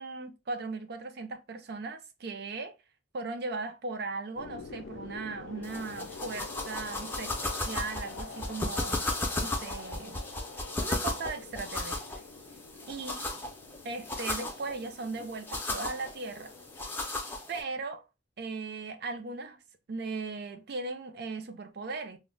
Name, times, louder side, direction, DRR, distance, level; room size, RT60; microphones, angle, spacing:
voice 1, 0.0-2.8 3.1-9.0 9.4-10.2 10.8-12.0 12.9-13.3 13.8-16.5 17.5-18.0 18.4-19.6 19.9-22.2, right 3 dB, 55° right, 0.4 m, -38 dB
sound 1, 4.4-17.1, left 4 dB, 80° left, 0.4 m, -47 dB
sound 2, 5.6-17.6, left 2 dB, 10° left, 0.4 m, -36 dB
2.1 x 2.0 x 3.7 m
head